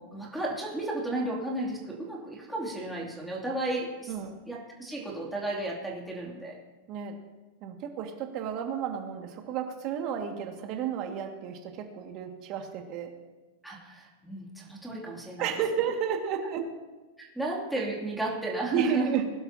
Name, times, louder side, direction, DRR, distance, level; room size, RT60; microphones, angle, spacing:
voice 1, 0.0-4.1 4.5-6.6 13.6-15.5 17.2-19.1, right 1 dB, ahead, -5 dB, 2.7 m, -33 dB
voice 2, 7.6-13.1 15.4-16.7 18.7-19.2, right 8 dB, 35° right, 2 dB, 2.0 m, -32 dB
21.5 x 11.5 x 2.9 m, 1.2 s
supercardioid pair, 160°, 0 cm